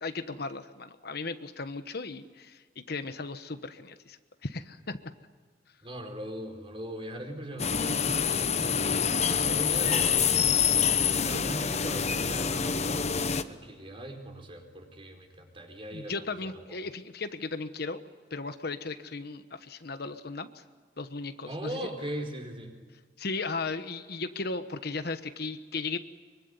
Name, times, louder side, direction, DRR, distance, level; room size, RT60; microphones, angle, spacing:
voice 1, 0.0-5.0 15.9-18.0 18.3-20.6 21.0-21.9 23.2-26.0, left 3 dB, 60° left, 10 dB, 1.2 m, -36 dB
voice 2, 5.8-16.5 21.5-22.7, equal, 30° right, 4 dB, 4.6 m, -40 dB
sound 1, 7.6-13.4, left 7 dB, 40° left, 1.0 m, -26 dB
24.5 x 24.0 x 9.6 m, 1.5 s
head